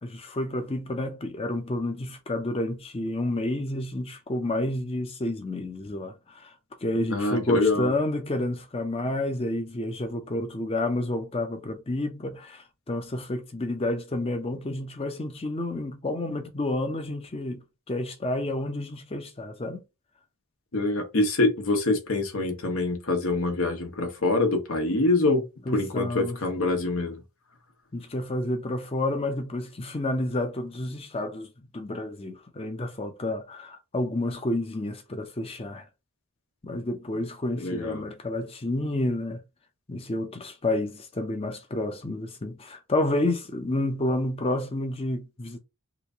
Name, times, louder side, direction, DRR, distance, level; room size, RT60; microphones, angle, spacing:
voice 1, 0.0-6.5 6.8-17.6 17.9-19.8 25.7-26.4 27.9-35.9 36.6-39.4 39.9-45.6, left 1 dB, 25° left, 0.5 m, -30 dB
voice 2, 7.1-7.9 20.7-27.2 37.6-38.0, left 2 dB, 70° left, 0.9 m, -25 dB
3.0 x 2.6 x 3.5 m
head